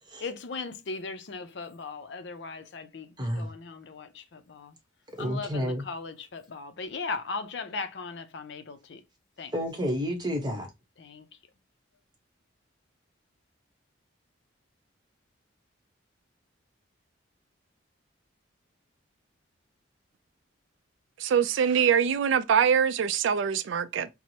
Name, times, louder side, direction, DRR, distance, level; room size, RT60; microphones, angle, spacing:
voice 1, 0.2-4.8 5.2-9.0 9.4-9.5 11.0-11.3, left 4 dB, 60° left, 0.5 m, -38 dB
voice 2, 3.2-3.5 5.2-5.8 9.5-10.7, equal, 20° right, 0.9 m, -30 dB
voice 3, 21.2-24.1, right 7 dB, 70° right, 0.3 m, -24 dB
4.4 x 2.0 x 2.7 m
head